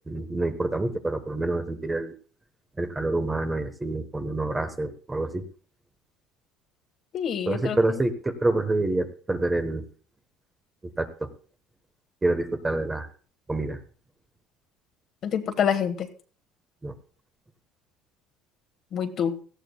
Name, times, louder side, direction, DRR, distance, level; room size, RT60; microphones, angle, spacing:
voice 1, 0.1-2.1 2.8-5.5 7.5-9.8 11.0-11.3 12.2-13.1 13.5-13.8 16.8-16.9, right 2 dB, 15° right, 9 dB, 1.1 m, -27 dB
voice 2, 7.1-8.0 15.2-16.1 18.9-19.3, left 8 dB, 45° left, 7 dB, 1.4 m, -27 dB
18.0 x 14.5 x 2.3 m, 0.40 s
cardioid pair, 140°, 0 cm